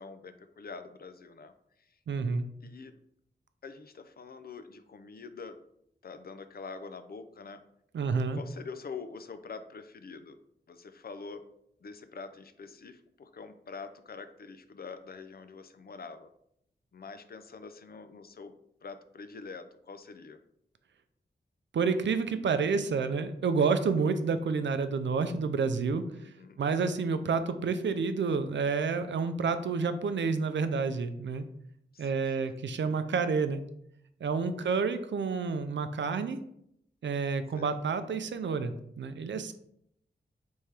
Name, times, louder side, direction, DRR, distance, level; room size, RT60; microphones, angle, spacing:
voice 1, 0.0-2.0 2.6-3.0 3.6-5.6 6.0-7.6 8.3-10.4 10.7-11.4 11.8-16.3 16.9-18.5 18.8-20.4 26.1-26.6 31.9-32.5 34.6-34.9 37.6-37.8, left 4 dB, 55° left, 10 dB, 0.4 m, -45 dB
voice 2, 2.1-2.4 7.9-8.4 21.7-26.0 26.6-31.4 32.0-33.6 34.2-36.4 37.0-39.5, right 5 dB, 75° right, 10 dB, 0.4 m, -29 dB
3.5 x 3.3 x 4.3 m, 0.74 s
cardioid pair, 60°, 19 cm